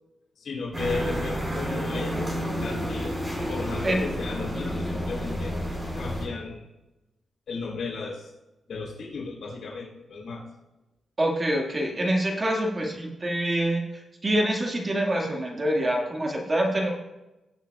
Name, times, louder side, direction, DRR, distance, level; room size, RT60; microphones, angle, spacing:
voice 1, 0.4-2.2 2.5-3.2 3.5-5.5 5.9-6.7 7.5-8.3 8.7-10.4, left 3 dB, 70° left, -2 dB, 3.2 m, -34 dB
sound 1, 0.7-6.3, equal, 10° right, 4.2 m, -30 dB
voice 2, 11.2-13.8 14.2-16.9, right 1 dB, 25° right, 0 dB, 1.7 m, -25 dB
19.5 x 8.1 x 2.3 m, 1.0 s
wide cardioid pair, 130°, 0 cm